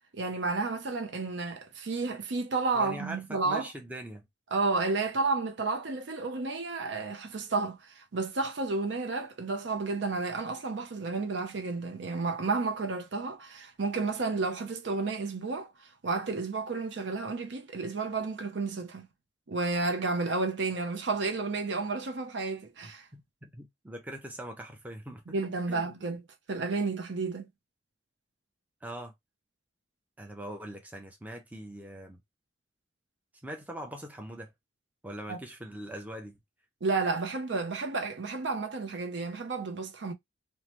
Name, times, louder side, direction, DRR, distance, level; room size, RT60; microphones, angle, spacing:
voice 1, 0.1-3.7 4.5-15.7 16.0-19.1 19.5-23.1 25.3-26.2 26.5-27.5 35.3-35.4 36.8-40.1, right 3 dB, 65° right, 0.6 m, -31 dB
voice 2, 2.7-4.2 23.1-25.4 25.7-25.9 28.8-29.1 30.2-32.2 33.4-34.5 35.0-36.4, right 1 dB, 10° right, 0.6 m, -42 dB
3.1 x 2.1 x 2.9 m
head